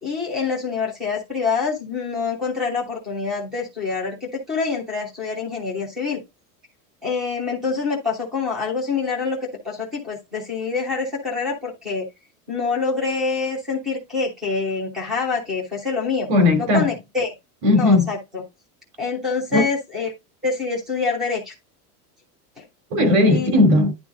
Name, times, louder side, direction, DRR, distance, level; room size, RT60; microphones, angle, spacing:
voice 1, 0.0-6.2 7.0-9.4 9.6-12.1 12.5-16.3 16.6-17.3 17.7-18.4 19.0-20.1 20.4-21.5 22.6-22.7 23.3-23.5, left 4 dB, ahead, 0.3 m, -26 dB
voice 2, 16.3-16.9 17.6-18.1 19.5-19.6 22.9-23.9, left 2 dB, 45° right, 3.0 m, -16 dB
10.5 x 3.7 x 3.7 m
supercardioid pair, 170°, 47 cm